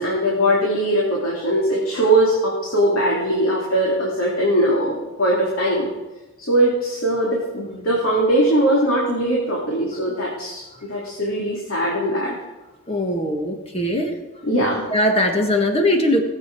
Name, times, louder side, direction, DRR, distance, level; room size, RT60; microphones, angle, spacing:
voice 1, 0.0-5.9 6.4-12.3 14.4-14.8, right 1 dB, 75° left, -4 dB, 2.7 m, -20 dB
voice 2, 12.9-14.1 14.9-16.2, left 1 dB, 30° left, 3 dB, 1.6 m, -20 dB
19.5 x 8.1 x 4.6 m, 1.1 s
head